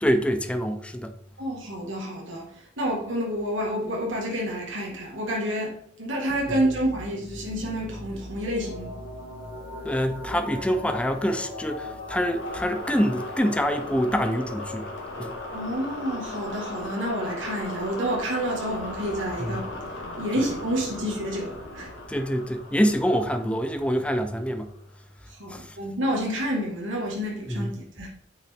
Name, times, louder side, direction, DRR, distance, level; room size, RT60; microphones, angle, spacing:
voice 1, 0.0-1.1 6.5-6.6 9.8-14.9 15.2-15.3 19.4-19.6 20.4-20.5 22.1-24.7 25.5-25.8 27.5-27.7, equal, 5° left, 0.5 m, -26 dB
voice 2, 1.4-2.5 2.8-8.9 15.5-19.7 20.2-21.9 25.4-28.1, equal, 80° right, 1.7 m, -29 dB
sound 1, 6.3-24.8, left 1 dB, 75° left, 1.6 m, -37 dB
9.0 x 5.6 x 3.6 m
head